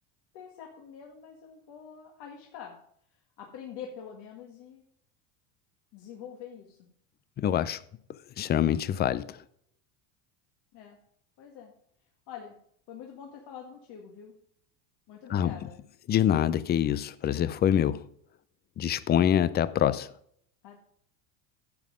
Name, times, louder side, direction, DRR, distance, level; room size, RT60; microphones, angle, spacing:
voice 1, 0.3-2.7 3.4-4.8 5.9-6.8 10.7-11.0 11.4-11.7 12.3-12.6 12.9-14.3 15.1-15.8 20.6-20.8, left 8 dB, 55° left, 1.9 m, -45 dB
voice 2, 7.4-7.8 8.4-9.4 15.3-15.5 16.1-18.1 18.8-20.1, left 10 dB, 25° left, 0.4 m, -25 dB
10.5 x 7.5 x 5.0 m
supercardioid pair, 105°, 48 cm